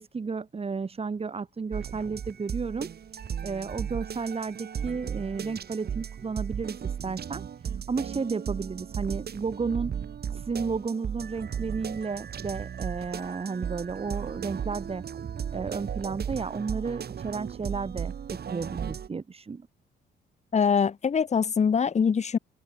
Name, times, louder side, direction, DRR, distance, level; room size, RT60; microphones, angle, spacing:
voice 1, 0.0-2.9 3.4-9.9 10.3-15.1 15.5-19.7, right 4 dB, 30° right, 1.9 m, -33 dB
sound 1, 1.7-19.1, right 8 dB, 55° right, 4.7 m, -35 dB
voice 2, 20.5-22.4, left 6 dB, 35° left, 1.0 m, -23 dB
cardioid pair, 90°, 20 cm